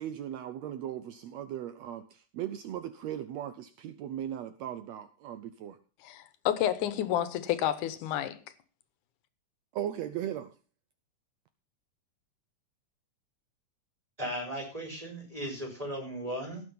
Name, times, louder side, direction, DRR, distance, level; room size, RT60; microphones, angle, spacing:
voice 1, 0.0-5.8 9.7-10.5, right 11 dB, 75° right, 11 dB, 1.7 m, -38 dB
voice 2, 6.0-8.4, left 11 dB, 85° left, 13 dB, 2.4 m, -30 dB
voice 3, 14.2-16.6, equal, 10° right, 1 dB, 4.5 m, -36 dB
17.5 x 6.3 x 5.4 m, 0.36 s
omnidirectional pair, 3.5 m